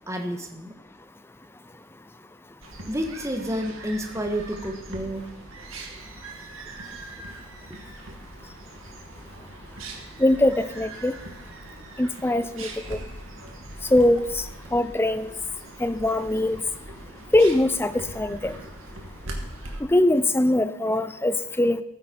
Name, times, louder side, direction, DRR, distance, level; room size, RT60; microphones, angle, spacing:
voice 1, 0.1-0.7 2.9-5.3, equal, 15° right, 4 dB, 1.4 m, -30 dB
sound 1, 2.6-19.8, right 2 dB, 80° right, 2.4 m, -41 dB
voice 2, 10.2-11.1 12.0-13.0 13.9-14.4 14.7-15.3 15.8-16.6 17.3-18.5 19.9-21.8, left 1 dB, 10° left, 12 dB, 0.6 m, -22 dB
14.5 x 14.5 x 4.5 m, 0.81 s
head